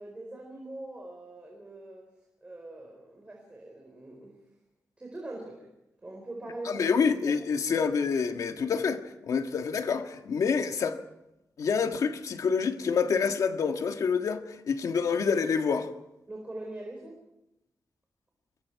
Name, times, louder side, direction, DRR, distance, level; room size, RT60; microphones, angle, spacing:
voice 1, 0.0-2.1 2.4-4.4 5.0-5.7 6.0-6.9 7.2-7.4 16.3-17.2, right 2 dB, 20° right, 4.4 m, -42 dB
voice 2, 6.6-11.0 11.6-15.9, left 5 dB, 70° left, 1.5 m, -27 dB
26.5 x 22.5 x 4.7 m
wide cardioid pair, 145°, 6 cm